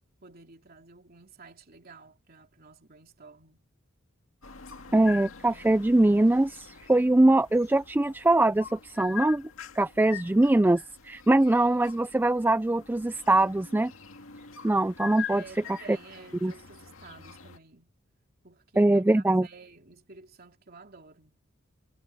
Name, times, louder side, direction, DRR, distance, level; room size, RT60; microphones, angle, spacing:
voice 1, 0.2-3.7 15.3-17.9 18.4-21.4, right 4 dB, 45° right, 3.1 m, -51 dB
sound 1, 4.4-17.6, left 6 dB, 75° left, 2.1 m, -44 dB
voice 2, 4.9-9.5 9.8-13.9 14.6-15.4 16.4-16.5 18.8-19.5, right 2 dB, 10° right, 0.3 m, -22 dB
head